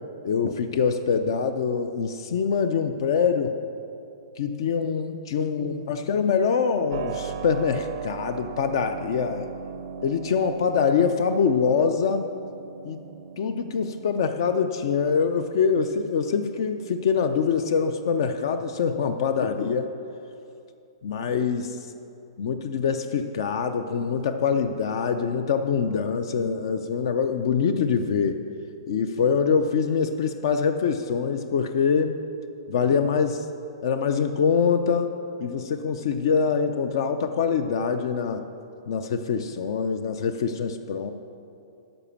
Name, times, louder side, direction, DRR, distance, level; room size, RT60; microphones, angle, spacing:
voice 1, 0.2-3.5 4.4-9.5 10.0-12.3 12.8-13.0 13.4-19.9 21.0-21.8 22.4-28.4 28.9-32.2 32.7-33.4 33.8-35.1 35.4-38.4 38.9-41.1, left 6 dB, 55° left, 8 dB, 0.5 m, -24 dB
Keyboard (musical), 6.9-19.6, right 8 dB, 40° right, 0.5 m, -40 dB
12.0 x 5.1 x 6.9 m, 2.6 s
hypercardioid pair, 170°, 3 cm